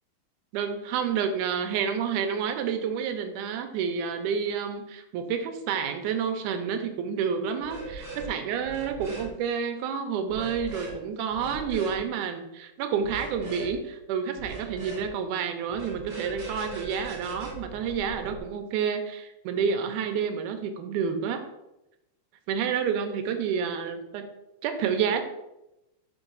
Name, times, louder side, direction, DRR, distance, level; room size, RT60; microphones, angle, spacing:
voice 1, 0.5-21.4 22.5-24.3 24.6-25.2, right 7 dB, 85° right, 6 dB, 2.1 m, -29 dB
sound 1, 7.6-8.3 8.6-9.3 10.3-10.9 11.3-12.0 13.0-13.7 14.4-15.1 15.7-18.4, right 3 dB, 40° right, 1.8 m, -39 dB
5.2 x 4.8 x 3.9 m, 0.92 s
omnidirectional pair, 3.6 m